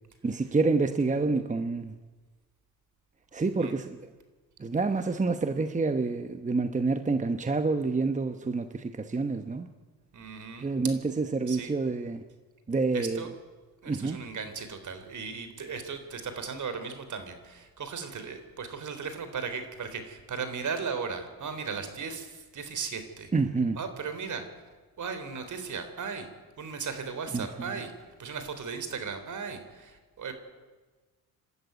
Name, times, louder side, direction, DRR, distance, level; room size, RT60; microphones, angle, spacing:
voice 1, 0.2-1.9 3.3-4.0 4.6-9.7 10.6-12.2 12.7-13.2 13.9-14.2 23.3-23.8 27.3-27.5, right 3 dB, 20° right, 8 dB, 1.1 m, -28 dB
voice 2, 10.1-10.7 11.5-11.7 12.9-13.3 13.8-23.3 23.8-24.4 25.0-26.3 26.6-27.9 28.2-30.3, right 5 dB, 50° right, 9 dB, 3.7 m, -36 dB
27.5 x 12.5 x 9.6 m, 1.3 s
cardioid pair, 85°, 38 cm